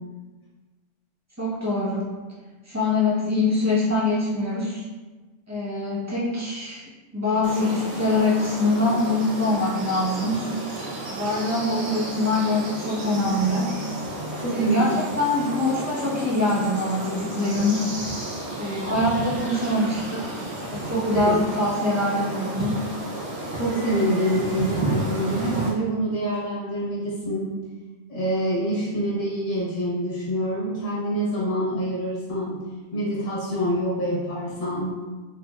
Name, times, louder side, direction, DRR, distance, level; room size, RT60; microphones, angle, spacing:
voice 1, 1.4-2.1 2.7-4.8 5.5-6.8 7.1-10.4 11.1-13.7 14.5-17.8 18.6-20.4 20.7-22.8, left 2 dB, 15° right, -8 dB, 0.7 m, -24 dB
sound 1, 7.4-25.7, right 2 dB, 50° right, 0.9 m, -32 dB
voice 2, 14.3-14.9 18.8-19.0 20.8-21.4 23.5-27.5 28.1-32.6 32.9-35.0, right 1 dB, 70° left, -7 dB, 1.2 m, -26 dB
3.3 x 3.2 x 2.3 m, 1.3 s
omnidirectional pair, 1.3 m